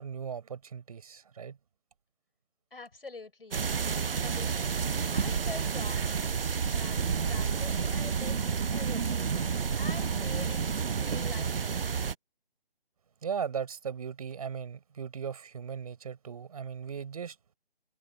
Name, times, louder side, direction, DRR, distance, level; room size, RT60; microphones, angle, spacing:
voice 1, 0.0-1.6 13.2-17.4, right 7 dB, 35° right, 5.7 m, -37 dB
voice 2, 2.7-3.6 4.0-4.7 5.1-6.1 6.7-8.4 8.7-9.3 9.8-10.6 10.9-11.9, left 3 dB, 65° left, 7.1 m, -45 dB
sound 1, 3.5-12.1, right 6 dB, 65° right, 0.6 m, -30 dB
figure-of-eight pair, 150°, 31 cm